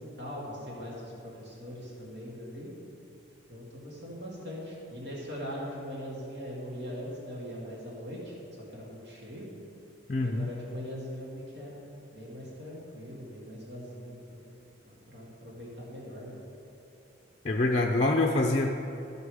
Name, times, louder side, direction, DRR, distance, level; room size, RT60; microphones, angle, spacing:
voice 1, 0.0-2.7 3.5-8.4 8.7-9.5 10.2-11.8 12.1-14.5 14.8-16.4, equal, 65° right, -5 dB, 2.1 m, -41 dB
voice 2, 10.1-10.5 17.4-18.7, left 2 dB, 35° left, 1 dB, 0.5 m, -25 dB
13.5 x 5.3 x 4.9 m, 2.9 s
head